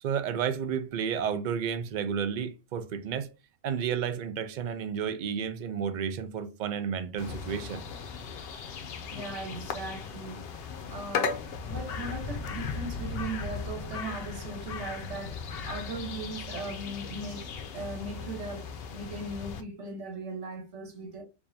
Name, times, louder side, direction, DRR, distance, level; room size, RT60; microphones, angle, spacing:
voice 1, 0.0-3.3 3.6-7.8, right 7 dB, 55° right, 0.6 m, -31 dB
sound 1, 7.2-19.6, left 5 dB, 65° left, 0.8 m, -37 dB
voice 2, 9.1-17.4 17.7-21.2, right 2 dB, 80° right, 1.5 m, -39 dB
4.8 x 2.6 x 2.6 m
omnidirectional pair, 1.2 m